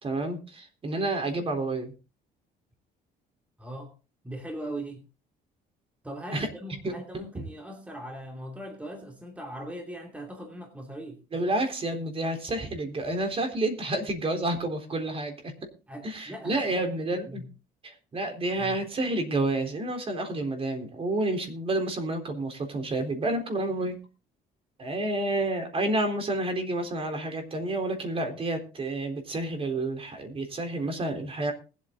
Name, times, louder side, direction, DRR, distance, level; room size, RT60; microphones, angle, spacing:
voice 1, 0.0-1.9 6.3-6.5 6.8-6.9 11.3-15.4 16.0-17.4 17.8-24.0 24.8-31.5, right 2 dB, 35° right, 6 dB, 3.8 m, -29 dB
voice 2, 3.6-3.9 4.2-5.0 6.0-11.2 15.9-16.8 17.3-17.5 18.6-18.8, right 1 dB, 10° right, 2 dB, 2.8 m, -40 dB
20.5 x 8.4 x 3.8 m, 0.32 s
cardioid pair, 110°, 17 cm